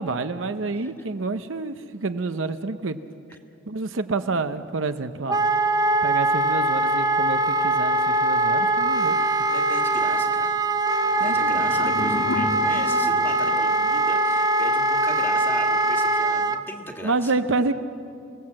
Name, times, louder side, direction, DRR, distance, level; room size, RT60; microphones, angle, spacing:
voice 1, 0.0-3.0 3.7-5.5 6.0-9.2 11.2-12.1 12.7-12.9 17.0-17.7, right 3 dB, 70° right, 9 dB, 0.8 m, -28 dB
Wind instrument woodwind instrument, 5.3-16.6, right 2 dB, 20° right, 0.7 m, -22 dB
voice 2, 9.5-10.6 11.2-17.3, equal, 10° left, 2 dB, 1.8 m, -38 dB
sound 1, 11.0-14.2, left 1 dB, 70° left, 1.4 m, -33 dB
26.5 x 17.0 x 7.7 m, 2.6 s
head